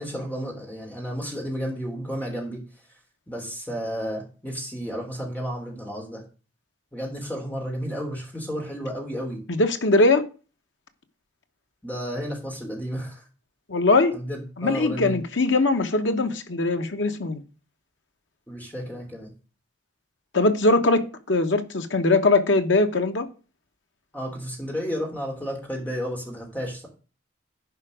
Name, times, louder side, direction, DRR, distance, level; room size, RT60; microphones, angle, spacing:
voice 1, 0.0-2.6 3.3-6.2 6.9-9.4 11.8-13.2 14.1-15.2 18.5-19.3 24.1-26.9, equal, 10° left, 0 dB, 3.2 m, -32 dB
voice 2, 9.5-10.2 13.7-14.1 14.6-17.4 20.3-23.3, left 2 dB, 75° left, 8 dB, 1.1 m, -21 dB
10.5 x 5.1 x 5.0 m, 0.35 s
head